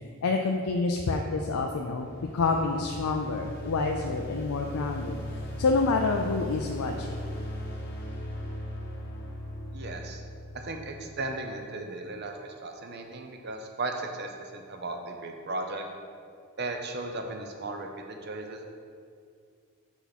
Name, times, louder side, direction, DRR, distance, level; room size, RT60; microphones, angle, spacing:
voice 1, 0.2-5.2 5.6-7.2, left 3 dB, 85° left, 2 dB, 0.5 m, -28 dB
sound 1, 1.4-11.4, equal, 45° left, 0.9 m, -38 dB
voice 2, 9.7-10.2 10.6-15.8 16.6-18.7, right 2 dB, 45° right, 4 dB, 0.7 m, -36 dB
5.9 x 5.9 x 4.1 m, 2.2 s
head